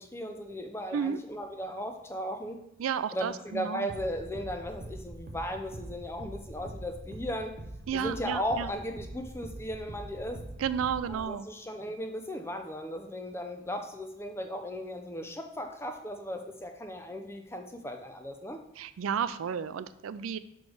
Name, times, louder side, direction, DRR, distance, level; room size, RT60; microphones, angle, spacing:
voice 1, 0.0-2.6 3.1-7.5 7.9-10.4 11.1-18.6, equal, 10° left, 5 dB, 0.5 m, -36 dB
voice 2, 2.8-3.9 7.9-8.7 10.6-11.5 18.8-20.4, right 7 dB, 90° right, 14 dB, 0.4 m, -32 dB
sound 1, 3.9-11.3, right 1 dB, 40° right, 0.6 m, -44 dB
6.2 x 3.2 x 4.9 m, 0.84 s
head